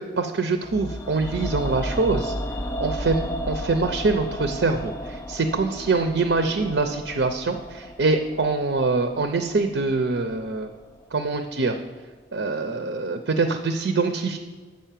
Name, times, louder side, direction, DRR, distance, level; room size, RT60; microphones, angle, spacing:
voice 1, 0.0-2.3 2.8-10.7 11.1-11.8 12.3-14.4, right 3 dB, 75° right, 6 dB, 0.6 m, -24 dB
sound 1, 0.6-10.8 11.0-11.1, equal, 15° left, 0.4 m, -34 dB
7.5 x 5.6 x 7.4 m, 1.4 s
head